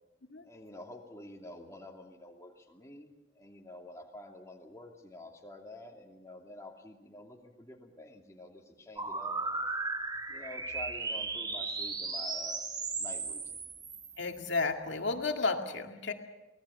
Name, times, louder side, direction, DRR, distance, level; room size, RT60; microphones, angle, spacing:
voice 1, 0.4-9.6 10.3-12.6 12.9-13.6, left 1 dB, 15° left, 1 dB, 2.7 m, -49 dB
sound 1, 9.0-14.5, right 3 dB, 20° right, 1.3 m, -36 dB
voice 2, 14.2-16.1, left 3 dB, 70° left, 4 dB, 2.1 m, -32 dB
25.0 x 18.5 x 7.2 m, 1.1 s
head